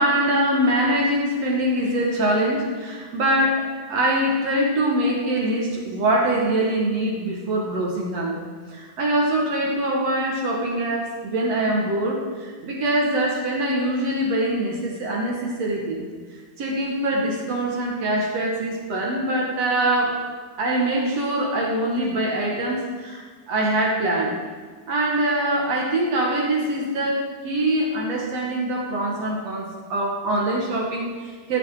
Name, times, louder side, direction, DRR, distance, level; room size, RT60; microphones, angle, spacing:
voice 1, 0.0-16.1 16.6-20.2 20.6-24.4 24.9-31.6, right 1 dB, 50° right, -1 dB, 2.2 m, -23 dB
16.0 x 9.9 x 5.0 m, 1.5 s
omnidirectional pair, 4.8 m